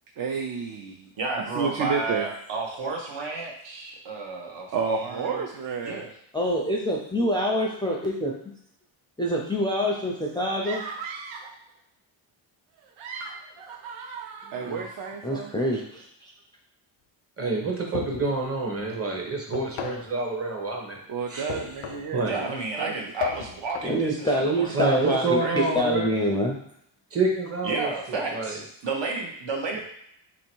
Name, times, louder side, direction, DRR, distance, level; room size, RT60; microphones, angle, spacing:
voice 1, 0.2-2.3 4.7-6.0 14.5-15.5 21.1-22.9, right 5 dB, 45° right, 0 dB, 0.5 m, -31 dB
voice 2, 1.2-5.4 5.8-6.1 22.3-24.3 24.6-25.9 27.6-29.8, right 3 dB, 65° right, 1 dB, 1.0 m, -32 dB
voice 3, 6.3-8.3 9.2-10.8 14.5-14.8 15.2-16.3 23.8-26.6, equal, 10° left, -2 dB, 0.4 m, -26 dB
sound 1, 10.6-11.6 12.8-15.2, right 5 dB, 85° right, 0.7 m, -39 dB
voice 4, 17.4-21.0 21.3-21.5 22.1-22.3 24.7-26.1 27.1-28.6, right 3 dB, 30° right, 0 dB, 0.9 m, -27 dB
sound 2, 17.9-18.4 19.5-20.1 21.5-22.2 23.2-24.0, left 9 dB, 80° left, 0.6 m, -34 dB
3.0 x 2.8 x 4.4 m, 0.72 s
cardioid pair, 135°, 48 cm